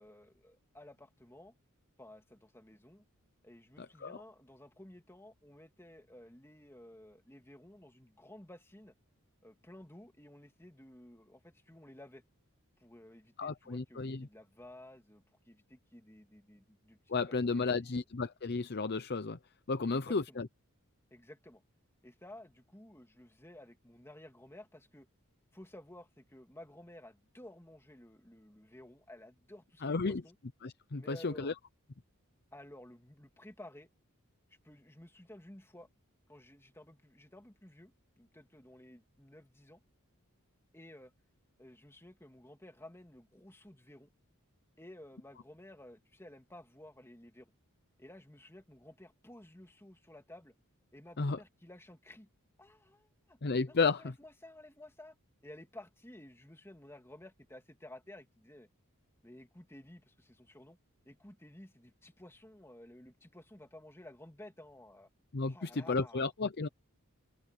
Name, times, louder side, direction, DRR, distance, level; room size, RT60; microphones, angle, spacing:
voice 1, 0.0-1.5 2.0-3.0 3.4-8.9 9.4-12.2 12.8-18.0 19.8-20.4 21.1-21.6 22.0-25.1 25.5-30.4 30.9-31.5 32.5-33.9 34.6-35.9 36.3-39.8 40.7-41.1 41.6-44.1 44.8-47.5 48.0-50.5 50.9-52.3 52.6-53.4 53.7-55.2 55.4-58.7 59.2-60.8 61.0-65.1 65.5-66.3, left 1 dB, 10° left, 2.5 m, -54 dB
voice 2, 13.4-14.3 17.1-19.4 19.7-20.5 29.8-30.2 30.6-31.5 51.2-51.4 53.4-54.1 65.3-66.7, left 4 dB, 45° left, 0.7 m, -33 dB
head